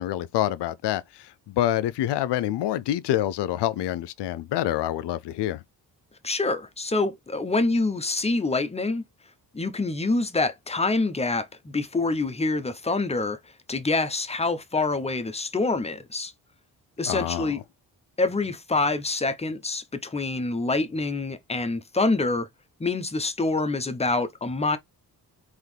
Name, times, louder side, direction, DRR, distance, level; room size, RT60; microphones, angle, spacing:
voice 1, 0.0-5.6 17.1-17.5, left 12 dB, 85° left, 0.5 m, -27 dB
voice 2, 6.2-9.0 9.5-13.4 13.7-16.3 17.0-17.6 18.2-22.5 22.8-24.8, left 3 dB, 15° left, 0.8 m, -26 dB
3.8 x 3.0 x 3.3 m
cardioid pair, 75°, 40 cm